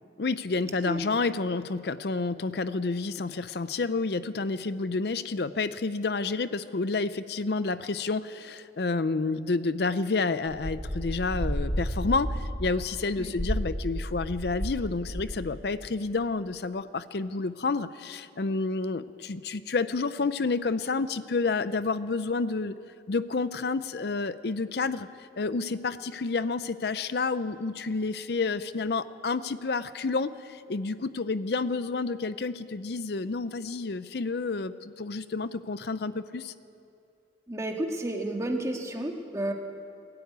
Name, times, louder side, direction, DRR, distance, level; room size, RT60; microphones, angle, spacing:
voice 1, 0.2-22.8 23.1-25.1 25.4-36.5, left 3 dB, 60° left, 13 dB, 0.5 m, -29 dB
sound 1, 10.5-14.8 15.1-15.5, equal, 25° left, 4.5 m, -32 dB
voice 2, 37.5-39.5, right 1 dB, 15° right, 2 dB, 1.7 m, -31 dB
22.0 x 13.5 x 9.4 m, 2.7 s
head